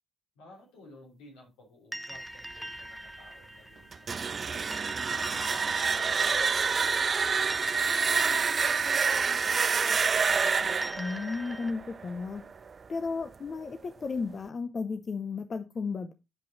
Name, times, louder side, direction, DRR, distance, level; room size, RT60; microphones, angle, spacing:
voice 1, 0.3-4.7 5.1-7.0 7.5-10.2, left 2 dB, 80° left, -1 dB, 3.0 m, -55 dB
sound 1, 1.9-11.7, right 1 dB, 5° right, 0.7 m, -43 dB
sound 2, 3.9-12.7, right 5 dB, 45° right, 0.4 m, -27 dB
voice 2, 11.0-12.4 12.9-16.1, left 4 dB, 45° left, 9 dB, 0.7 m, -34 dB
8.6 x 5.3 x 4.0 m, 0.27 s
hypercardioid pair, 50°, 0 cm